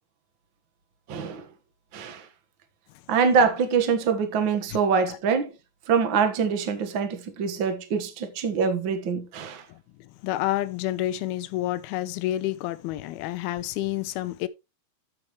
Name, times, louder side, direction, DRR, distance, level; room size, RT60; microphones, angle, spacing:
voice 1, 1.1-1.4 1.9-2.3 3.1-5.5 5.9-9.6, right 5 dB, 55° right, 1.3 m, -24 dB
voice 2, 9.7-14.5, left 14 dB, 90° left, 2.6 m, -29 dB
14.0 x 6.0 x 3.1 m
omnidirectional pair, 4.4 m